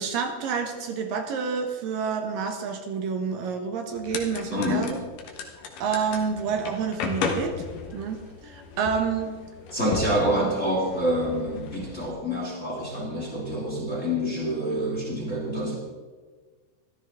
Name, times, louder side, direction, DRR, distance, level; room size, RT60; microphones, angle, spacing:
voice 1, 0.0-5.0 5.8-7.6 7.9-9.3 10.1-10.2, right 6 dB, 70° right, 4 dB, 2.6 m, -29 dB
sound 1, 4.0-12.1, left 5 dB, 65° left, 2.7 m, -35 dB
voice 2, 4.5-5.0 9.7-15.8, equal, 35° left, -2 dB, 1.2 m, -27 dB
14.5 x 13.5 x 3.6 m, 1.4 s
omnidirectional pair, 4.4 m